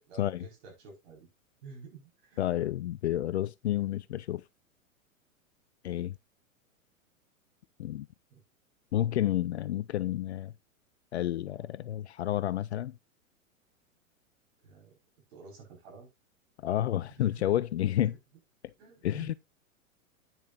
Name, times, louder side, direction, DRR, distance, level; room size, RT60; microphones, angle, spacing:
voice 1, 0.1-1.3 1.6-2.4 8.3-8.4 14.6-15.0 15.3-16.1 17.2-17.4 18.0-18.1 18.8-19.4, right 4 dB, 45° right, 4.9 m, -50 dB
voice 2, 2.4-4.4 5.8-6.2 7.8-8.1 8.9-10.5 11.1-13.0 16.6-18.1 18.6-18.7 19.0-19.3, left 12 dB, 55° left, 0.5 m, -30 dB
9.6 x 7.4 x 2.6 m
figure-of-eight pair, 100°, 42 cm